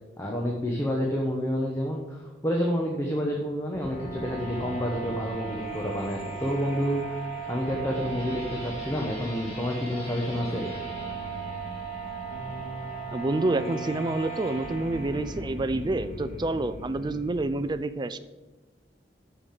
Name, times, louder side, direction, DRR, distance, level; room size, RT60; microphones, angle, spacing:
voice 1, 0.2-7.0 7.5-10.7, equal, 15° left, 0 dB, 1.0 m, -29 dB
sound 1, 3.7-17.7, right 3 dB, 40° left, 2.3 m, -37 dB
voice 2, 13.1-18.2, right 2 dB, 25° right, 11 dB, 0.4 m, -28 dB
6.7 x 6.1 x 7.5 m, 1.1 s
head